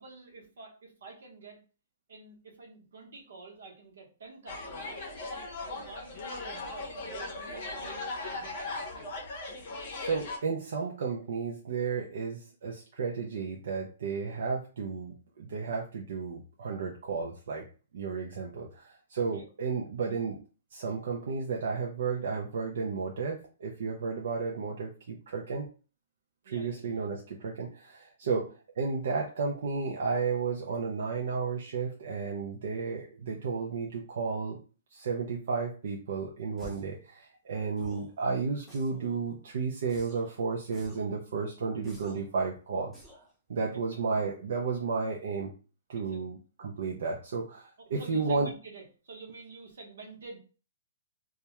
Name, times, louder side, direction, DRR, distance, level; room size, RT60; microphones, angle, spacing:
voice 1, 0.0-1.6 2.1-5.0 5.6-9.2 19.3-19.5 26.4-26.9 28.2-28.4 43.9-44.0 45.9-46.3 47.8-50.4, right 3 dB, 80° right, 1 dB, 0.9 m, -49 dB
sound 1, 4.5-10.4, left 2 dB, 45° left, 0.6 m, -38 dB
voice 2, 10.0-17.7 17.9-20.4 20.7-25.7 26.5-34.6 34.9-42.9 43.5-45.5 45.9-48.5, right 5 dB, 65° right, 0 dB, 0.4 m, -33 dB
Bullet Hit Grunts, 36.6-37.0 37.8-38.1 38.7-39.2 39.9-40.3 40.7-41.1 41.8-42.3 42.9-43.3, equal, ahead, 0.5 m, -50 dB
2.3 x 2.1 x 2.8 m, 0.36 s
hypercardioid pair, 170°, 0 cm